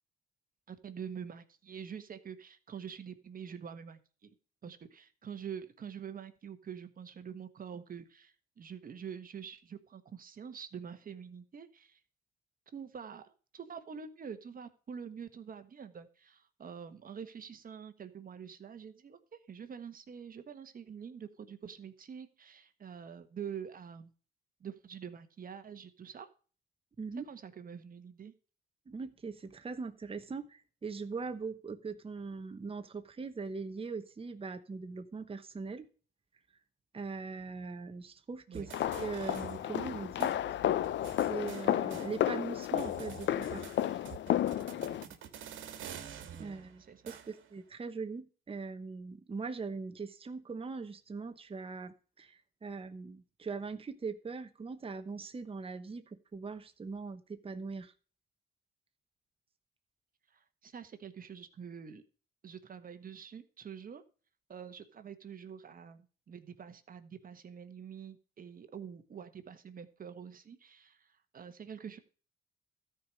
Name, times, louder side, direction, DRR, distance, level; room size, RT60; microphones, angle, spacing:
voice 1, 0.7-4.3 4.6-12.0 12.7-24.1 24.6-26.3 27.3-28.3 38.5-38.7 46.2-47.2 60.3-62.0 62.4-64.0 64.5-72.0, right 7 dB, 45° right, 9 dB, 1.4 m, -46 dB
voice 2, 27.0-27.3 28.9-35.9 36.9-40.6 41.2-43.9 46.4-56.0 56.3-57.9, right 4 dB, 30° right, 8 dB, 1.1 m, -41 dB
sound 1, 38.5-39.9 40.2-40.3 40.8-42.5 42.8-47.6, right 9 dB, 75° right, 1.7 m, -49 dB
sound 2, 38.7-45.0, left 12 dB, 65° left, 0.6 m, -32 dB
13.0 x 5.0 x 6.3 m, 0.38 s
cardioid pair, 90°, 20 cm